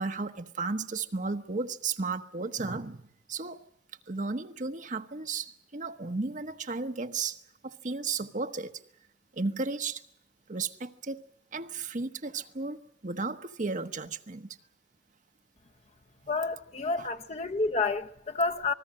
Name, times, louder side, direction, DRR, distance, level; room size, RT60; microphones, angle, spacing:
voice 1, 0.0-3.0 3.3-3.6 4.1-8.7 9.3-10.0 10.5-11.2 11.5-14.6 17.0-17.1, right 4 dB, 45° right, 1.1 m, -34 dB
voice 2, 16.3-18.7, left 3 dB, 40° left, 0.9 m, -29 dB
27.5 x 20.5 x 7.6 m
head